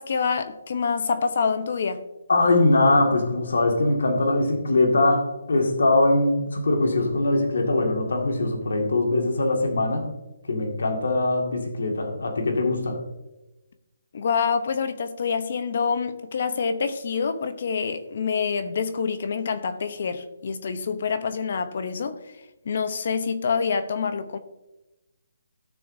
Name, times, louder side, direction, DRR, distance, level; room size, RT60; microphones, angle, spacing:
voice 1, 0.0-2.0 14.1-22.2 22.6-24.4, left 5 dB, 50° left, 0.9 m, -26 dB
voice 2, 2.3-10.1 10.5-13.0, left 2 dB, 80° left, 2.1 m, -22 dB
15.5 x 6.5 x 2.8 m
hypercardioid pair, 165°, 0 cm